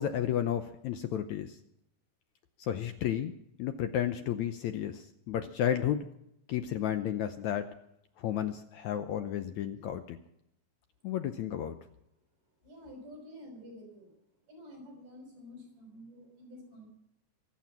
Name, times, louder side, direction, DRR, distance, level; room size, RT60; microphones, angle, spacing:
voice 1, 0.0-1.6 2.6-3.3 3.6-6.1 6.5-7.7 8.2-10.2 11.0-11.8, left 10 dB, 75° left, 9 dB, 1.9 m, -32 dB
voice 2, 12.6-14.2 14.5-16.9, left 1 dB, 65° right, 2 dB, 7.6 m, -49 dB
23.5 x 8.9 x 5.8 m, 0.79 s
omnidirectional pair, 3.9 m